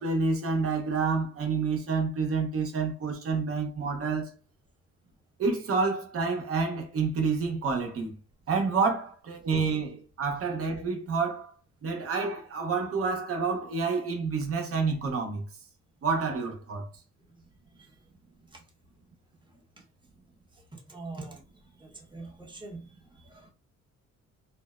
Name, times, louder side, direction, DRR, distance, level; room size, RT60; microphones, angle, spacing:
voice 1, 0.0-4.3 5.4-8.1 8.5-11.5 11.8-15.4 16.0-16.9, right 4 dB, 50° right, 0.8 m, -28 dB
voice 2, 19.5-19.8 20.5-21.4 21.8-23.5, right 3 dB, 15° right, 0.9 m, -45 dB
2.6 x 2.0 x 2.3 m
cardioid pair, 90°, 30 cm